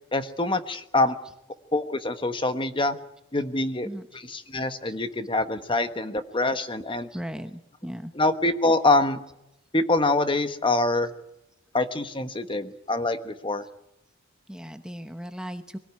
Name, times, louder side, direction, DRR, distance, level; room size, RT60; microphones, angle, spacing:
voice 1, 0.1-1.2 1.7-3.0 3.3-3.9 4.3-7.1 8.1-9.2 9.7-11.1 11.7-13.6, left 2 dB, 25° left, 9 dB, 1.2 m, -25 dB
voice 2, 3.8-4.2 4.8-5.0 7.1-8.1 14.5-15.8, equal, 5° right, 7 dB, 0.9 m, -37 dB
24.5 x 18.0 x 9.6 m, 0.85 s
head